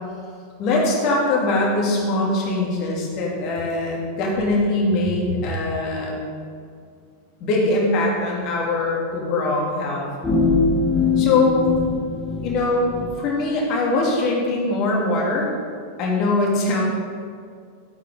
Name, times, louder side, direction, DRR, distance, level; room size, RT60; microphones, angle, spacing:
voice 1, 0.6-6.2 7.4-10.1 11.2-11.7 12.4-12.9 13.2-15.5 16.0-16.8, left 2 dB, 40° left, -3 dB, 2.6 m, -22 dB
sound 1, 10.2-13.1, left 4 dB, 15° left, 2.0 m, -22 dB
13.5 x 8.4 x 3.9 m, 2.2 s
figure-of-eight pair, 90°, 0 cm